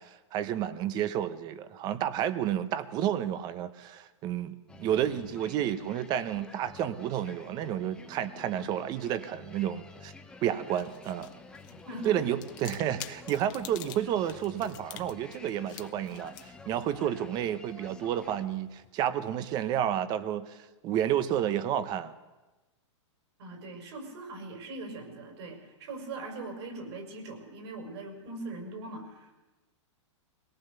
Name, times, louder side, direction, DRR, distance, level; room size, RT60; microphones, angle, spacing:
voice 1, 0.0-10.1 10.4-11.3 12.0-22.1, right 10 dB, 25° right, 13 dB, 0.9 m, -31 dB
sound 1, 4.7-18.5, left 3 dB, 5° left, 1.0 m, -50 dB
sound 2, 10.4-18.9, left 14 dB, 25° left, 0.8 m, -49 dB
voice 2, 11.9-12.2 23.4-29.3, right 2 dB, 60° right, 2 dB, 6.2 m, -41 dB
22.0 x 18.0 x 6.8 m, 1.1 s
hypercardioid pair, 155°, 16 cm